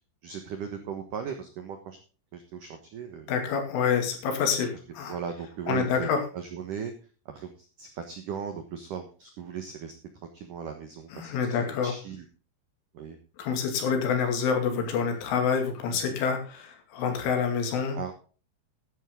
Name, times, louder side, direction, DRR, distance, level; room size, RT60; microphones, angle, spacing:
voice 1, 0.2-2.0 2.3-3.3 5.1-6.1 6.3-6.9 7.3-7.5 7.8-9.9 10.3-11.3 11.6-12.2 12.9-13.2 15.9-16.2 17.9-18.1, right 7 dB, 75° right, 6 dB, 1.9 m, -37 dB
voice 2, 3.3-5.2 5.7-6.2 11.1-11.9 13.4-18.0, left 6 dB, 75° left, 5 dB, 4.8 m, -27 dB
13.0 x 11.0 x 3.7 m, 0.36 s
omnidirectional pair, 5.8 m